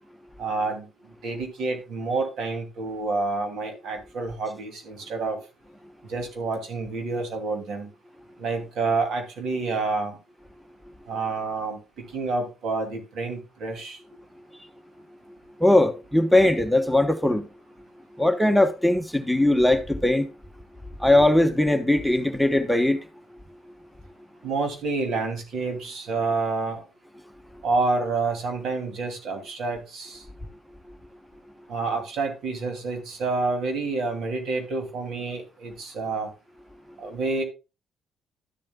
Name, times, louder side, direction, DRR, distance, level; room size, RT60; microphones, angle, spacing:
voice 1, 0.4-0.9 1.2-5.4 6.0-7.9 8.4-10.2 11.1-11.8 12.1-14.0 24.4-26.8 27.6-30.2 31.7-36.3 37.0-37.4, right 3 dB, 75° right, 2.6 m, -28 dB
voice 2, 15.6-17.5 18.2-20.3 21.0-23.0, left 1 dB, ahead, 1.0 m, -20 dB
12.5 x 7.5 x 2.2 m
cardioid pair, 90°, 0 cm